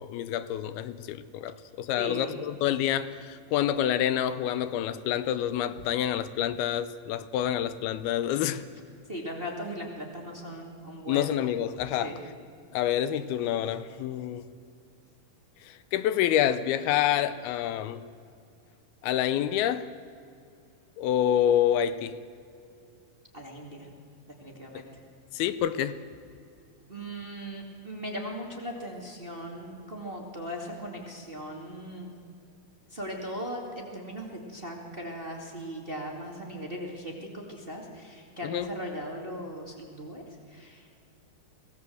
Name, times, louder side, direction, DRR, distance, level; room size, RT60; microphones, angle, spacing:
voice 1, 0.0-8.6 11.1-12.1 12.7-14.4 15.7-18.0 19.0-19.9 21.0-22.2 25.3-26.0 38.4-38.7, left 10 dB, 80° left, 14 dB, 2.6 m, -27 dB
voice 2, 2.0-2.4 9.1-11.3 12.0-12.2 23.3-23.9 24.4-24.8 26.9-32.1 32.9-40.9, equal, 20° right, 0 dB, 1.9 m, -38 dB
24.0 x 17.5 x 7.8 m, 2.4 s
omnidirectional pair, 4.5 m